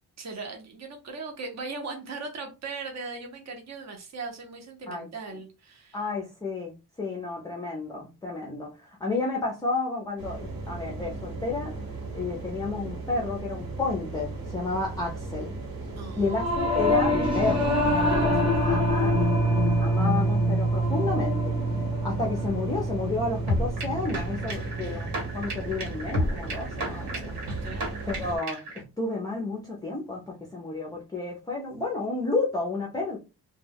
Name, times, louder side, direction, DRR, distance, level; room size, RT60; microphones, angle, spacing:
voice 1, 0.2-6.0 16.0-16.2 27.6-28.0, right 3 dB, 40° right, 0.7 m, -38 dB
voice 2, 5.9-6.7 7.0-11.8 12.1-15.5 16.1-21.6 22.0-25.1 25.3-27.4 28.1-33.2, left 3 dB, 10° left, 0.4 m, -31 dB
sound 1, 10.2-28.4, right 3 dB, 60° right, 1.1 m, -37 dB
Singing / Musical instrument, 16.2-25.8, equal, 10° right, 0.9 m, -26 dB
sound 2, 23.5-28.8, equal, 80° right, 1.3 m, -32 dB
2.2 x 2.2 x 3.3 m
wide cardioid pair, 140°, 40 cm